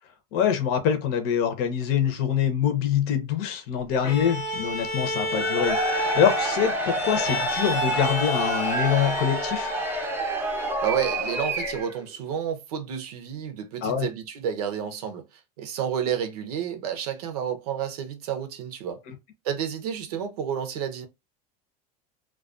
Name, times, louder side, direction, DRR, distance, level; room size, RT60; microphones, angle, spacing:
voice 1, 0.3-9.7 13.8-14.1, left 8 dB, 55° left, 0.6 m, -25 dB
Bowed string instrument, 4.0-10.3, left 1 dB, 90° left, 0.8 m, -31 dB
Cheering / Crowd, 5.3-12.0, right 1 dB, 10° right, 0.6 m, -28 dB
voice 2, 10.8-15.3 15.6-19.0 19.4-21.1, right 8 dB, 85° right, 0.7 m, -30 dB
2.3 x 2.2 x 2.4 m
supercardioid pair, 115°, 19 cm